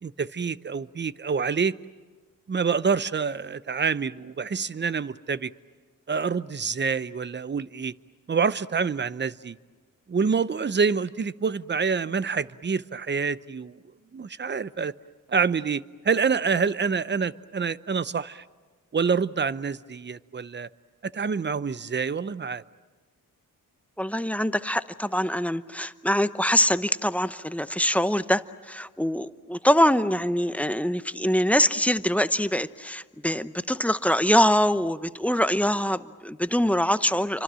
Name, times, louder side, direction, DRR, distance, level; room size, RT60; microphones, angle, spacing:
voice 1, 0.0-1.8 2.5-5.5 6.1-7.9 8.3-9.6 10.1-13.8 14.1-14.9 15.3-18.4 18.9-20.7 21.1-22.6, right 5 dB, 30° right, 16 dB, 0.7 m, -27 dB
voice 2, 24.0-37.4, equal, 5° left, 12 dB, 0.8 m, -24 dB
29.0 x 25.5 x 7.6 m, 1.4 s
cardioid pair, 70°, 34 cm